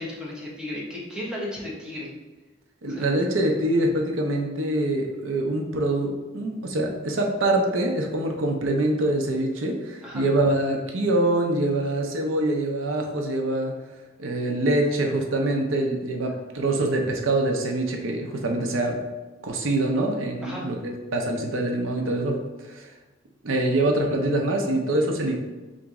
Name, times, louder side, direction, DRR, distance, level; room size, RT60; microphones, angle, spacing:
voice 1, 0.0-2.1 2.9-3.1 10.0-10.2 20.4-20.7, left 1 dB, 5° right, -5 dB, 0.7 m, -34 dB
voice 2, 2.8-13.7 14.2-19.0 19.4-22.4 22.7-22.9 23.4-25.4, right 1 dB, 80° right, 2 dB, 0.6 m, -24 dB
3.9 x 3.0 x 3.5 m, 1.2 s
head